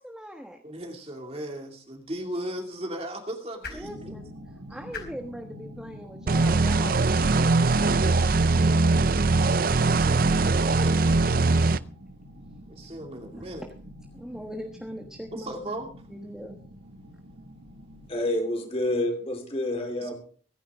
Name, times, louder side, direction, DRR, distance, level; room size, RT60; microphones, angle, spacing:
voice 1, 0.0-0.6 3.7-4.2 4.7-8.3 10.0-10.2 13.3-13.4 14.1-15.5 16.1-16.6, equal, 5° right, 3 dB, 1.3 m, -40 dB
voice 2, 0.6-4.1 9.7-11.0 12.7-13.7 15.3-15.9 20.0-20.1, right 1 dB, 30° right, 2 dB, 2.5 m, -36 dB
sound 1, 1.8-8.0, left 4 dB, 50° left, 4.5 m, -48 dB
sound 2, 3.8-18.1, equal, 75° right, 2.2 m, -46 dB
sound 3, 6.3-11.8, right 3 dB, 45° right, 0.5 m, -21 dB
voice 3, 18.1-20.2, left 1 dB, 30° left, 3 dB, 4.0 m, -28 dB
24.0 x 10.5 x 3.7 m, 0.43 s
head